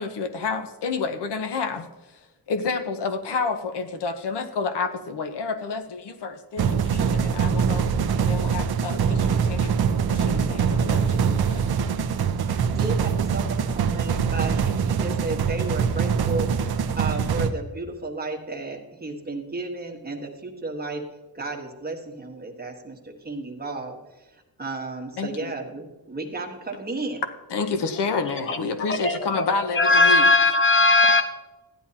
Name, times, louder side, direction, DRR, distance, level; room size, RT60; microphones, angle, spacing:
voice 1, 0.0-1.9 2.5-7.9 8.1-9.8 10.1-11.6 25.2-25.5 27.5-30.3, left 4 dB, 90° left, 8 dB, 1.1 m, -29 dB
sound 1, 6.6-17.5, right 6 dB, 70° right, 0.8 m, -23 dB
voice 2, 12.7-21.0 21.3-27.2, right 2 dB, 25° right, 2 dB, 1.4 m, -33 dB
voice 3, 28.9-31.2, left 3 dB, 30° left, 6 dB, 0.9 m, -19 dB
15.0 x 10.5 x 2.9 m, 1.1 s
wide cardioid pair, 155°, 40 cm